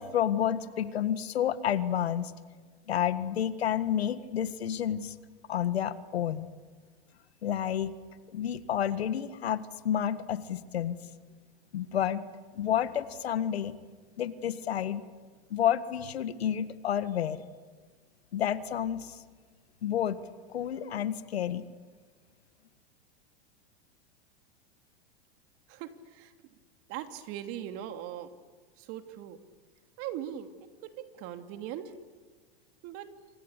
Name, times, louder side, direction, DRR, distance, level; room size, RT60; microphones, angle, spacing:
voice 1, 0.0-2.3 2.9-5.1 5.5-6.5 7.4-7.9 8.3-11.0 11.7-12.2 12.5-13.7 14.2-17.4 18.3-19.2 19.8-20.2 20.5-21.7, left 10 dB, 90° left, 13 dB, 1.7 m, -30 dB
voice 2, 25.7-26.3 26.9-28.3 28.8-29.4 30.0-30.5 30.8-31.9 32.8-33.1, right 11 dB, 50° right, 8 dB, 2.8 m, -40 dB
27.5 x 26.0 x 8.3 m, 1.4 s
hypercardioid pair, 120°, 30 cm